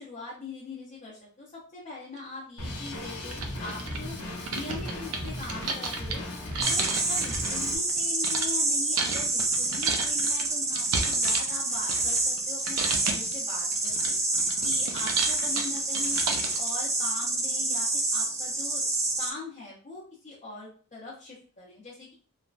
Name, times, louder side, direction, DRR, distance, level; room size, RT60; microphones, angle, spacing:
voice 1, 0.0-4.2 4.5-6.2 6.6-14.2 14.6-18.8 19.2-22.1, left 3 dB, 35° left, -7 dB, 0.6 m, -42 dB
sound 1, 2.2-2.3 2.9-3.0 3.2-8.5 8.9-12.4 12.6-13.3 13.7-16.7, right 4 dB, 70° right, 0.5 m, -32 dB
Drum kit, 2.6-7.7, left 1 dB, 85° left, 0.8 m, -37 dB
sound 2, 6.6-19.3, right 2 dB, 15° right, 0.3 m, -28 dB
3.2 x 2.1 x 2.4 m, 0.41 s
head